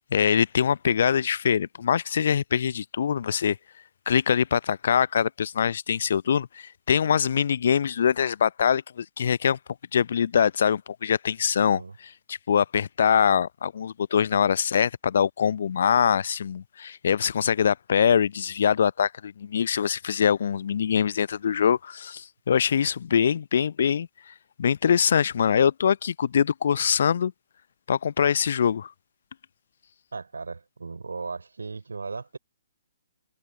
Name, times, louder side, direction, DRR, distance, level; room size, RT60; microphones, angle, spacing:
voice 1, 0.1-3.6 4.1-9.6 9.9-11.8 12.3-27.3 27.9-28.9, left 7 dB, 55° left, 0.6 m, -23 dB
voice 2, 30.1-32.4, right 4 dB, 70° right, 3.9 m, -36 dB
figure-of-eight pair, 130°, 0 cm